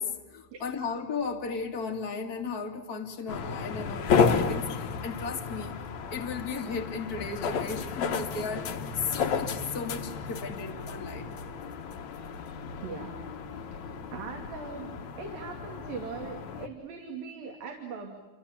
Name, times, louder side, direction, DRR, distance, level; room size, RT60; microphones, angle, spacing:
voice 1, 0.0-5.8 6.1-8.7 8.9-11.4, left 5 dB, 30° left, 1 dB, 2.0 m, -35 dB
sound 1, 3.3-16.7, left 5 dB, 75° left, 1.7 m, -32 dB
voice 2, 12.8-13.2 13.5-13.8 14.1-18.2, right 5 dB, 55° right, 2 dB, 4.0 m, -40 dB
30.0 x 26.5 x 7.3 m, 1.2 s
omnidirectional pair, 5.4 m